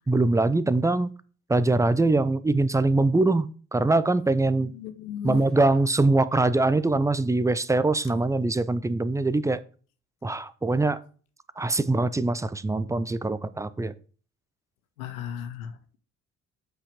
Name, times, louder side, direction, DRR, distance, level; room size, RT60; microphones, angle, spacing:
voice 1, 0.1-1.1 1.5-4.7 5.2-9.6 10.2-11.0 11.6-13.9, right 2 dB, 10° right, 0.5 m, -23 dB
voice 2, 4.7-5.4 15.0-16.0, left 9 dB, 80° left, 0.8 m, -35 dB
7.7 x 5.7 x 5.0 m
figure-of-eight pair, 45°, 42 cm